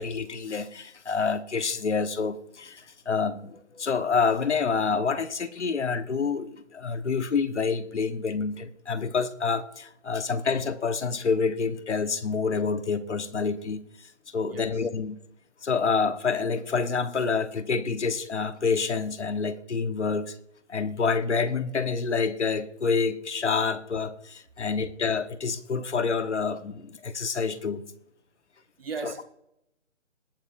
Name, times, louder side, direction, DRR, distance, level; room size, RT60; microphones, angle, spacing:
voice 1, 0.0-15.2 15.6-20.4 20.7-27.8 29.0-29.1, left 5 dB, 65° left, 1.1 m, -28 dB
voice 2, 14.5-14.9 28.8-29.2, right 4 dB, 50° right, 1.1 m, -37 dB
21.0 x 8.8 x 2.5 m
hypercardioid pair, 170°, 38 cm